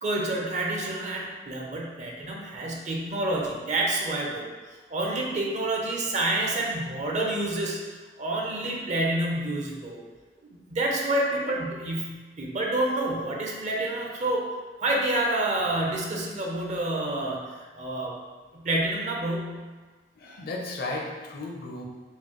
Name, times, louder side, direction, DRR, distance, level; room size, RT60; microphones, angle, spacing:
voice 1, 0.0-4.5 4.9-7.8 8.2-10.0 10.4-12.1 12.4-14.5 14.8-18.2 18.5-19.6, right 1 dB, 45° right, -1 dB, 0.5 m, -28 dB
voice 2, 20.2-21.9, left 2 dB, 60° left, 0 dB, 0.5 m, -34 dB
4.4 x 2.1 x 3.0 m, 1.3 s
head